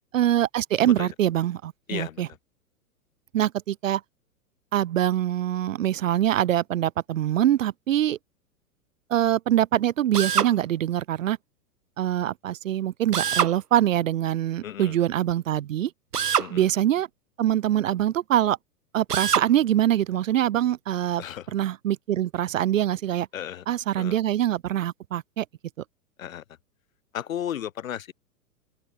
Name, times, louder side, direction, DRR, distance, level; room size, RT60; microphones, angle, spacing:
voice 1, 0.1-2.3 3.3-4.0 4.7-8.2 9.1-11.4 12.0-15.9 16.5-17.1 17.4-18.6 18.9-21.2 21.5-23.3 23.7-25.4, right 12 dB, 55° right, 0.8 m, -24 dB
voice 2, 0.8-1.1 1.9-2.4 14.6-15.0 16.4-16.7 21.2-21.5 23.3-23.6 24.0-24.2 26.2-26.4 27.1-28.1, left 10 dB, 60° left, 1.4 m, -34 dB
Drill, 10.1-10.5 13.1-13.6 16.1-16.5 19.1-19.5, right 8 dB, 90° right, 0.6 m, -24 dB
open air
figure-of-eight pair, 105°, 46 cm